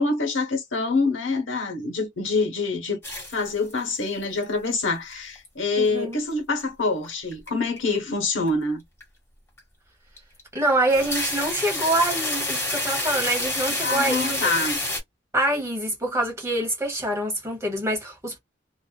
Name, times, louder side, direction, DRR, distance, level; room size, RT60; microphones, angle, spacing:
voice 1, 0.0-3.0 3.3-8.8 13.7-14.8, left 3 dB, 85° left, 0.9 m, -26 dB
sound 1, 3.0-3.9 4.2-4.7 5.1-5.7 6.1-6.2 7.0-7.5 7.8-8.0 8.5-8.6 9.0-9.1 9.6-9.7 10.2-10.4 10.7-15.0, left 1 dB, 15° left, 1.0 m, -28 dB
voice 2, 5.8-6.2 10.5-14.5 15.3-18.4, right 1 dB, 15° right, 1.0 m, -25 dB
2.4 x 2.3 x 2.2 m
head